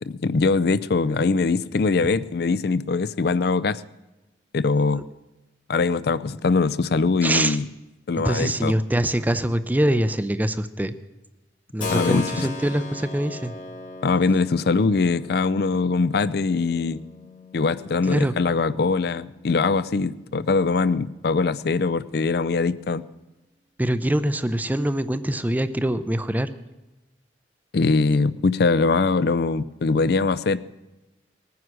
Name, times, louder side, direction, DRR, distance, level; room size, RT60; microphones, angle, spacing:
voice 1, 0.0-3.8 4.5-5.0 5.7-7.7 8.1-8.7 11.9-12.5 14.0-17.0 17.5-23.0 27.7-30.6, left 4 dB, 60° left, 16 dB, 0.5 m, -22 dB
voice 2, 7.2-7.6 8.1-10.9 11.7-13.5 18.1-18.4 23.8-26.5, right 1 dB, 10° right, 12 dB, 0.4 m, -24 dB
Keyboard (musical), 11.8-20.4, left 3 dB, 45° left, 1.6 m, -38 dB
20.0 x 9.5 x 6.1 m, 1.1 s
head